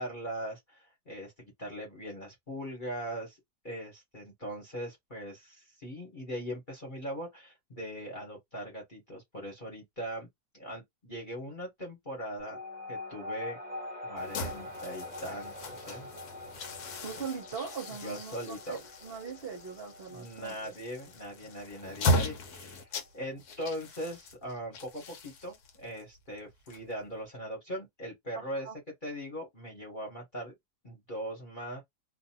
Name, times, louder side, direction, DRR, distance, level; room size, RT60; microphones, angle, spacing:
voice 1, 0.0-3.4 3.6-10.3 10.5-12.6 12.9-13.6 14.0-16.1 18.0-18.8 20.1-22.9 23.1-28.7 29.0-30.5 30.8-31.8, equal, 35° left, 1.1 m, -40 dB
sound 1, 12.4-23.3, left 2 dB, 10° right, 0.6 m, -44 dB
sound 2, 14.2-27.2, left 1 dB, 75° left, 1.2 m, -37 dB
voice 2, 17.0-20.7 28.3-28.8, right 6 dB, 50° right, 0.8 m, -41 dB
2.6 x 2.5 x 2.8 m
omnidirectional pair, 1.8 m